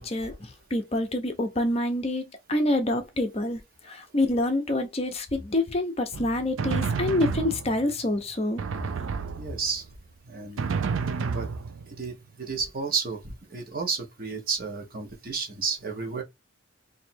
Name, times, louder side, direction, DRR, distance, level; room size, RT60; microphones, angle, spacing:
voice 1, 0.0-8.6, left 1 dB, 30° left, 0.6 m, -27 dB
Drum, 6.1-8.0 8.6-9.9 10.6-12.1, right 5 dB, 80° right, 0.4 m, -30 dB
voice 2, 9.4-9.8 10.3-10.7 11.3-11.5 12.0-16.2, right 5 dB, 45° right, 1.1 m, -32 dB
3.1 x 2.7 x 4.3 m
head